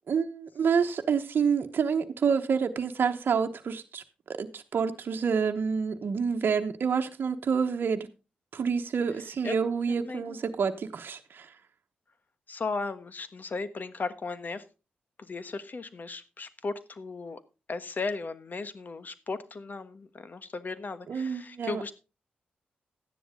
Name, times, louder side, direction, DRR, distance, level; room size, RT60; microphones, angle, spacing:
voice 1, 0.1-8.1 8.5-11.5 21.1-21.8, right 6 dB, 65° right, 1.0 m, -28 dB
voice 2, 9.9-10.4 12.5-14.6 15.2-17.4 17.7-21.9, left 4 dB, 50° left, 1.3 m, -36 dB
13.0 x 10.0 x 3.7 m
supercardioid pair, 40°, 4 cm